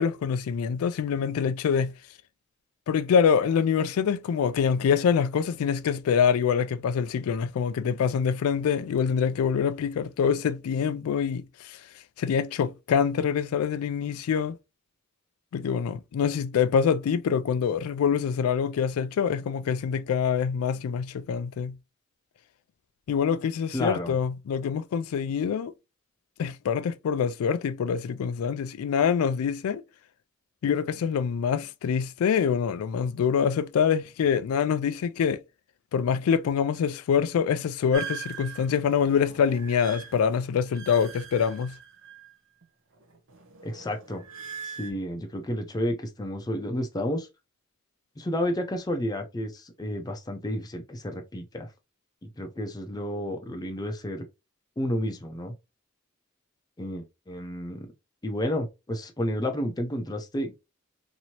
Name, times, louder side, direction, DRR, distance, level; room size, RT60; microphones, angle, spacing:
voice 1, 0.0-1.9 2.9-11.8 12.2-14.6 15.5-21.8 23.1-25.7 26.4-29.8 30.6-35.4 35.9-41.7, left 7 dB, 90° left, 0.3 m, -25 dB
voice 2, 23.7-24.2 43.6-44.2 44.6-47.3 48.2-51.7 52.2-54.3 54.8-55.5 56.8-57.9 58.2-60.5, left 1 dB, 20° left, 0.5 m, -31 dB
sound 1, 37.9-42.6 43.0-44.9, right 7 dB, 65° right, 0.7 m, -41 dB
2.9 x 2.6 x 2.8 m
head